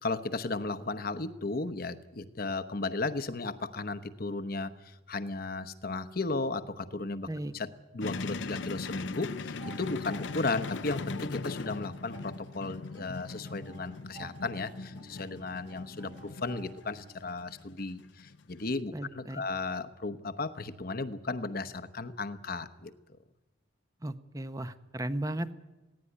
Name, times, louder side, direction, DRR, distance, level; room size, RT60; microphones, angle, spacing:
voice 1, 0.0-7.3 7.5-7.7 7.9-22.9, left 3 dB, 50° left, 11 dB, 1.0 m, -35 dB
sound 1, 8.0-18.7, left 3 dB, 65° left, 0.6 m, -40 dB
sound 2, 9.6-17.5, right 3 dB, 40° right, 1.5 m, -53 dB
voice 2, 18.9-19.4 24.0-25.5, right 1 dB, 15° right, 11 dB, 0.8 m, -35 dB
18.5 x 16.5 x 9.9 m, 1.1 s
head